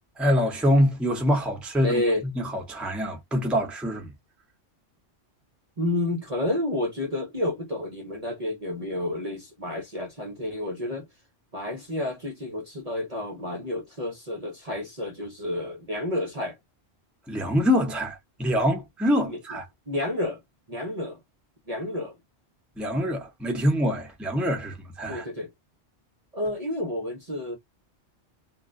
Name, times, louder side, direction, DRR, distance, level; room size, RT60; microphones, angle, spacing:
voice 1, 0.2-2.0 2.3-4.1 17.3-19.7 22.8-25.3, equal, ahead, 0.6 m, -25 dB
voice 2, 1.8-2.2 5.8-11.1 11.5-16.6 19.2-19.4 19.9-20.4 20.7-21.2 21.7-22.2 25.1-25.5 26.3-27.6, left 1 dB, 40° right, 0.7 m, -30 dB
2.3 x 2.1 x 3.5 m
omnidirectional pair, 1.2 m